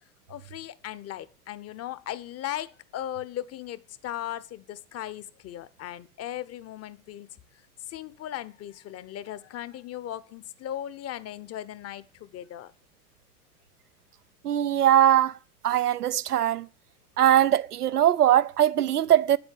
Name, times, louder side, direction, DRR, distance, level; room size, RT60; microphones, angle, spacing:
voice 1, 0.3-7.4 7.9-12.7 16.4-16.5, left 12 dB, 30° left, 1.0 m, -37 dB
voice 2, 14.4-15.3 15.6-16.7 17.2-19.4, right 11 dB, 85° right, 0.7 m, -21 dB
9.7 x 8.1 x 8.4 m
figure-of-eight pair, 85°, 45 cm